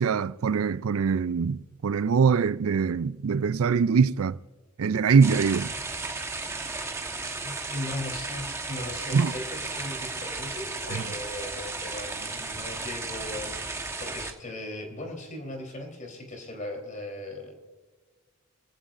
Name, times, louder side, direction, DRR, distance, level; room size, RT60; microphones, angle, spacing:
voice 1, 0.0-4.4 4.8-5.7 9.1-9.3 10.9-11.0, right 5 dB, 85° right, 0.4 m, -23 dB
sound 1, 5.2-14.3, right 3 dB, 15° right, 1.2 m, -34 dB
voice 2, 7.4-17.6, left 1 dB, 35° left, 3.7 m, -38 dB
26.5 x 14.5 x 2.6 m
head